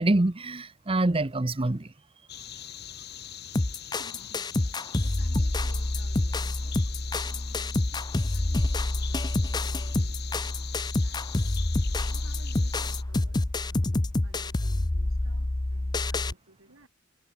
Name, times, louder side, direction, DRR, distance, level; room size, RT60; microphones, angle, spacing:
voice 1, 0.0-1.9, right 2 dB, 25° right, 0.8 m, -25 dB
sound 1, 2.3-13.0, left 10 dB, 50° left, 4.1 m, -42 dB
sound 2, 3.5-16.3, left 2 dB, 20° left, 0.6 m, -27 dB
voice 2, 3.6-6.8 7.2-10.5 10.9-11.6 12.0-16.9, right 1 dB, 70° right, 4.7 m, -55 dB
head